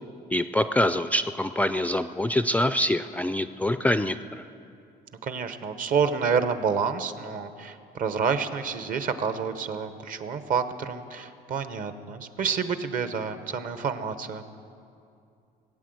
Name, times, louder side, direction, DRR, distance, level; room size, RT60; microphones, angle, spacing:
voice 1, 0.3-4.2, left 1 dB, 10° left, 11 dB, 0.3 m, -25 dB
voice 2, 5.2-14.4, right 6 dB, 55° right, 10 dB, 1.0 m, -28 dB
19.0 x 8.7 x 7.9 m, 2.5 s
cardioid pair, 110°, 17 cm